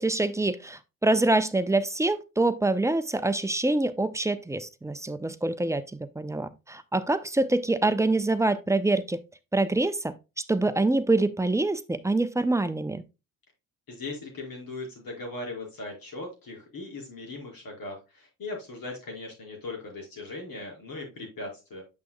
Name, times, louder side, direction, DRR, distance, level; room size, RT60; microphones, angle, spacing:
voice 1, 0.0-9.2 9.5-10.1 10.5-13.0, right 2 dB, 5° right, 0.7 m, -25 dB
voice 2, 13.9-21.8, left 2 dB, 50° left, 4.7 m, -39 dB
8.5 x 6.1 x 2.2 m
hypercardioid pair, 55°, 43 cm